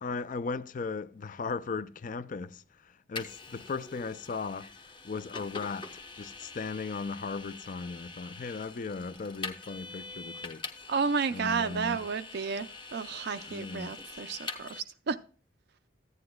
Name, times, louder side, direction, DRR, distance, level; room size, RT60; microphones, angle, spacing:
voice 1, 0.0-4.7 5.0-10.6 11.3-12.0 13.5-14.0, left 4 dB, 40° left, 0.4 m, -37 dB
Vehicle, 3.2-14.8, left 3 dB, 25° left, 0.8 m, -44 dB
voice 2, 10.9-15.2, right 5 dB, 50° right, 0.4 m, -32 dB
14.5 x 9.7 x 2.3 m
head